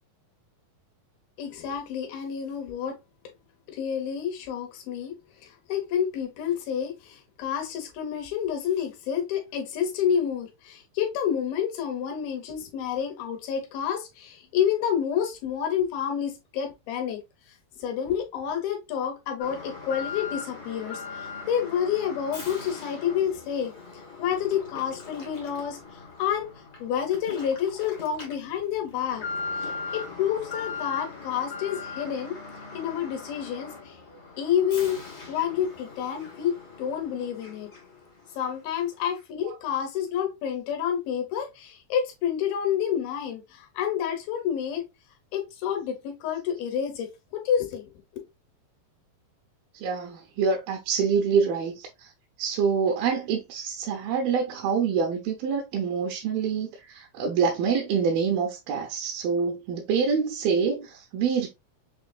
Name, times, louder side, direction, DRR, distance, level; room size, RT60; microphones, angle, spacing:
voice 1, 1.4-3.0 3.7-5.2 5.4-17.2 17.8-23.7 24.2-26.5 26.8-29.3 29.6-32.4 32.7-34.0 34.4-35.0 35.3-37.7 38.4-44.9 45.3-47.8, left 8 dB, 90° left, 2.8 m, -29 dB
Alarm, 19.4-38.1 38.4-38.5 39.1-39.2, left 4 dB, 60° left, 0.8 m, -40 dB
voice 2, 49.7-52.1 52.4-61.5, right 6 dB, 85° right, 2.5 m, -26 dB
6.3 x 2.6 x 2.3 m
omnidirectional pair, 4.1 m